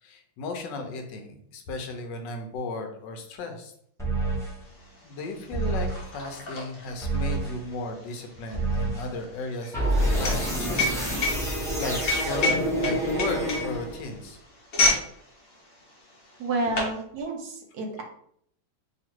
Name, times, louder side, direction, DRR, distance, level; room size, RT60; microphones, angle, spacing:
voice 1, 0.0-3.7 5.0-11.3 11.8-14.4, left 3 dB, 75° left, 5 dB, 1.3 m, -35 dB
sound 1, 4.0-4.5 5.5-6.1 7.0-7.6 8.5-9.1 9.7-14.1, right 1 dB, 5° left, 0.4 m, -27 dB
sound 2, 4.8-4.9 5.1-15.1 15.4-15.7 16.3-17.0, left 2 dB, 50° left, 1.3 m, -28 dB
voice 2, 16.4-18.0, right 2 dB, 65° right, 2 dB, 1.1 m, -30 dB
3.0 x 2.8 x 4.4 m, 0.67 s
omnidirectional pair, 2.1 m